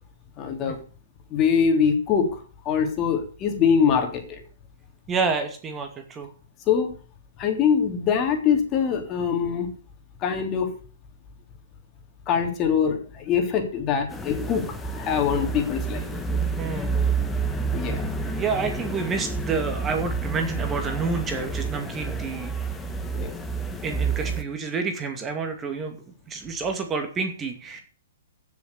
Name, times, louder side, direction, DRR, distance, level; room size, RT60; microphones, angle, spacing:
voice 1, 0.4-0.8 1.3-2.4 2.6-4.4 6.7-6.9 7.4-9.7 10.2-10.8 12.3-16.1 17.7-18.1 23.1-23.3, left 7 dB, 30° left, 3 dB, 3.5 m, -23 dB
voice 2, 5.1-6.3 16.6-16.9 18.4-22.5 23.8-26.0 26.3-27.8, right 5 dB, 20° right, 5 dB, 2.4 m, -29 dB
sound 1, 14.1-24.4, right 4 dB, 10° left, 1.8 m, -29 dB
15.5 x 7.2 x 6.9 m, 0.40 s
hypercardioid pair, 130°, 0 cm